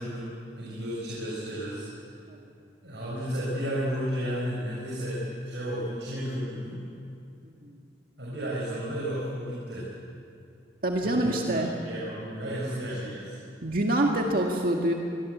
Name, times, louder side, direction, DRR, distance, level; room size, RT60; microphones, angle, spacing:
voice 1, 0.0-1.9 2.8-6.8 8.2-9.9 11.0-13.4, equal, 80° right, -6 dB, 7.1 m, -33 dB
voice 2, 10.8-11.7 13.6-14.9, right 1 dB, 55° right, 1 dB, 2.0 m, -26 dB
26.5 x 22.5 x 8.6 m, 2.5 s
head